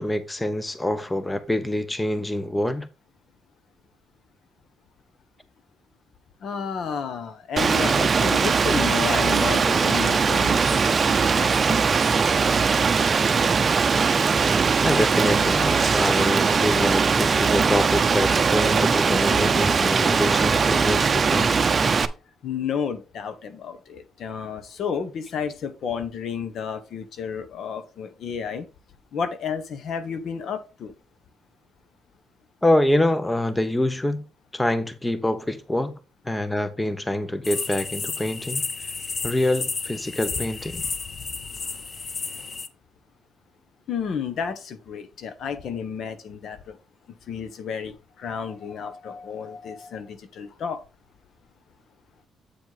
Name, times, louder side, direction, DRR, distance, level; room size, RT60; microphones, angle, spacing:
voice 1, 0.0-2.9 14.8-21.5 32.6-34.2 34.5-36.0 36.2-38.6 39.2-40.8, left 1 dB, 10° left, 0.8 m, -25 dB
voice 2, 6.4-12.2 22.4-28.7 29.1-30.9 43.9-46.8 47.3-50.8, left 6 dB, 65° left, 1.1 m, -32 dB
Rain, 7.6-22.1, right 5 dB, 40° right, 0.6 m, -20 dB
sound 1, 15.6-15.8 16.2-17.3 17.6-18.3 18.5-20.4, right 2 dB, 15° right, 1.1 m, -38 dB
sound 2, 37.4-42.7, left 4 dB, 40° left, 0.8 m, -32 dB
8.3 x 4.7 x 4.0 m
cardioid pair, 90°, 0 cm